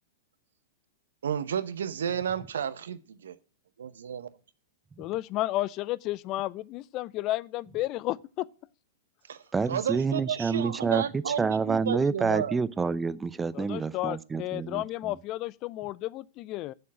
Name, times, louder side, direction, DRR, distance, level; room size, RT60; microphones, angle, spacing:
voice 1, 1.2-3.4 3.8-4.3 9.3-9.4 9.7-12.5, right 8 dB, 70° right, 0.9 m, -32 dB
voice 2, 5.0-8.5 13.5-16.7, left 16 dB, 40° left, 0.4 m, -32 dB
voice 3, 9.5-15.2, right 5 dB, 15° right, 0.6 m, -28 dB
7.7 x 7.6 x 8.5 m
hypercardioid pair, 105°, 0 cm